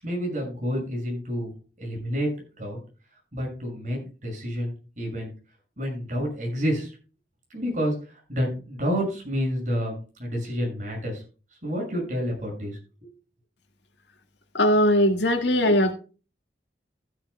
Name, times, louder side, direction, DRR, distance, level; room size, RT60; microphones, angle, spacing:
voice 1, 0.0-1.5 1.8-2.8 3.3-5.3 5.8-6.9 7.5-11.2 11.6-13.1, equal, 45° right, 6.5 m, -29 dB
voice 2, 14.5-15.9, equal, 85° left, 1.8 m, -20 dB
15.0 x 10.5 x 2.2 m
head